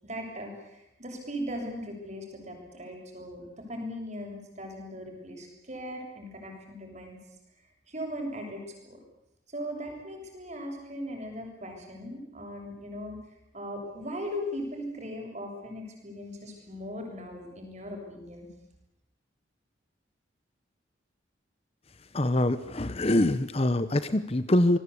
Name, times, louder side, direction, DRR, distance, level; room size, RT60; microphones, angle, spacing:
voice 1, 0.0-7.2 7.9-9.0 9.5-13.2 13.5-18.5, equal, 35° right, 3 dB, 7.2 m, -38 dB
voice 2, 22.1-24.8, left 1 dB, 30° left, 13 dB, 0.9 m, -24 dB
27.0 x 20.5 x 8.5 m, 0.84 s
head